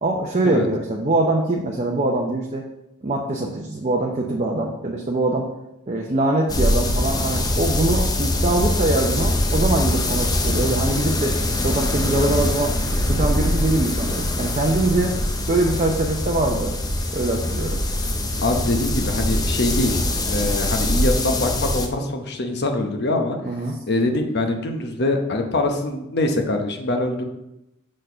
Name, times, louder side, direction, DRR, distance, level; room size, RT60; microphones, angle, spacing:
voice 1, 0.0-2.6 3.0-5.5 5.9-11.4 11.6-12.8 13.0-15.1 15.5-16.7 17.1-17.8 23.4-23.8, right 2 dB, 30° right, 0 dB, 0.6 m, -23 dB
sound 1, 6.5-21.9, left 1 dB, 20° left, 0.6 m, -23 dB
voice 2, 18.4-20.0 20.3-23.4 23.9-27.2, left 2 dB, 50° left, 4 dB, 0.9 m, -23 dB
6.4 x 4.4 x 5.6 m, 0.89 s
head